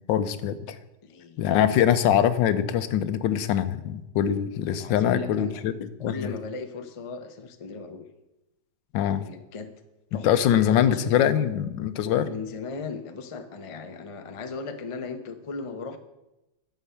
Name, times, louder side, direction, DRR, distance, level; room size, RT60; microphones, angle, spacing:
voice 1, 0.1-0.8 1.4-5.7 6.0-6.3 8.9-9.3 10.2-12.3, left 10 dB, 90° left, 12 dB, 1.4 m, -23 dB
voice 2, 1.0-1.7 4.7-5.6 6.0-8.1 9.2-9.7 10.1-10.5 10.8-11.3 12.2-16.0, left 4 dB, 60° left, 7 dB, 0.3 m, -37 dB
11.5 x 7.3 x 5.6 m, 0.96 s
omnidirectional pair, 2.0 m